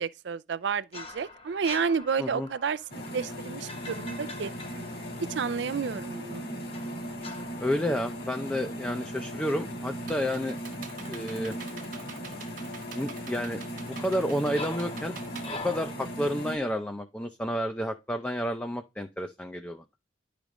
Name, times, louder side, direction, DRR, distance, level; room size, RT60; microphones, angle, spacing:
voice 1, 0.0-4.5 5.3-6.5, right 6 dB, 70° right, 0.4 m, -31 dB
sound 1, 0.9-5.8 6.7-9.2 9.5-9.8 13.8-15.9, left 2 dB, 30° left, 1.1 m, -44 dB
sound 2, 2.9-16.6, equal, 55° left, 1.6 m, -38 dB
voice 2, 7.6-10.6 11.1-11.5 12.9-13.6 13.9-15.2 15.6-19.8, equal, 5° left, 0.5 m, -30 dB
Computer keyboard, 9.5-16.4, right 6 dB, 45° right, 1.2 m, -47 dB
11.0 x 5.1 x 3.1 m
head